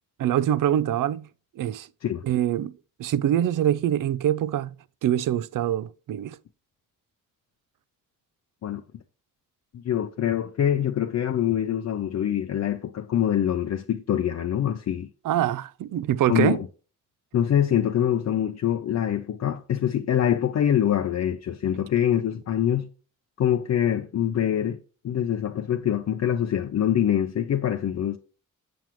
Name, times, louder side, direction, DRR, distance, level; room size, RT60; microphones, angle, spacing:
voice 1, 0.2-1.3 1.6-1.9 2.2-2.7 3.0-4.7 5.0-6.4 15.2-16.6, right 11 dB, 80° right, 0.5 m, -24 dB
voice 2, 9.7-15.1 16.3-16.6 17.3-22.9 23.4-24.8 25.0-28.2, left 10 dB, 55° left, 0.5 m, -24 dB
7.6 x 7.1 x 3.1 m
wide cardioid pair, 150°, 32 cm